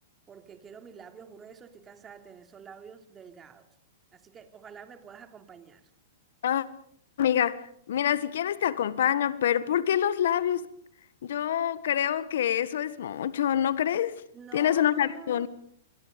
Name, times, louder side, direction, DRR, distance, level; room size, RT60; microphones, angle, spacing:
voice 1, 0.3-3.7 4.1-5.8 14.3-15.5, right 6 dB, 20° right, 2.9 m, -48 dB
voice 2, 7.2-10.7 11.2-14.1 14.5-15.5, left 10 dB, 70° left, 1.6 m, -26 dB
28.0 x 22.0 x 5.3 m
hypercardioid pair, 120°, 0 cm